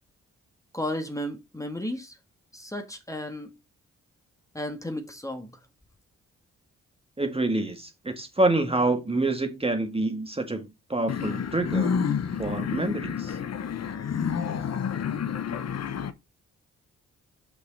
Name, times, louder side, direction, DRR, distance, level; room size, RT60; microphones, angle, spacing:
voice 1, 0.7-2.2 2.5-3.5 4.5-5.5, left 1 dB, 10° left, 1.7 m, -33 dB
voice 2, 7.2-12.0 12.4-13.4, right 2 dB, 20° right, 1.7 m, -27 dB
sound 1, 11.1-16.1, left 7 dB, 60° left, 0.9 m, -29 dB
6.1 x 6.0 x 4.0 m
cardioid pair, 65°, 30 cm